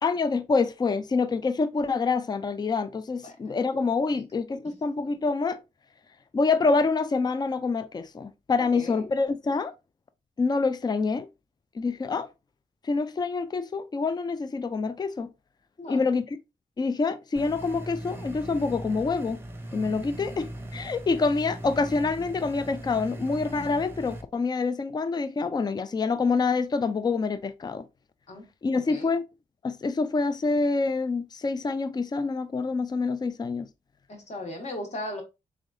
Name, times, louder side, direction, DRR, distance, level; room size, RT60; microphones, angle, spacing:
voice 1, 0.0-5.6 6.3-9.7 10.4-11.3 11.8-12.3 12.8-15.3 15.9-16.4 16.8-19.4 19.7-27.9 28.6-29.2 29.6-33.7, left 4 dB, 30° left, 0.4 m, -26 dB
voice 2, 8.6-9.1 15.8-16.1 28.3-28.5 28.9-29.1 34.1-35.2, left 1 dB, 50° left, 1.4 m, -37 dB
sound 1, 17.4-24.2, right 1 dB, 15° right, 0.7 m, -39 dB
3.6 x 3.5 x 2.6 m
cardioid pair, 90°, 14 cm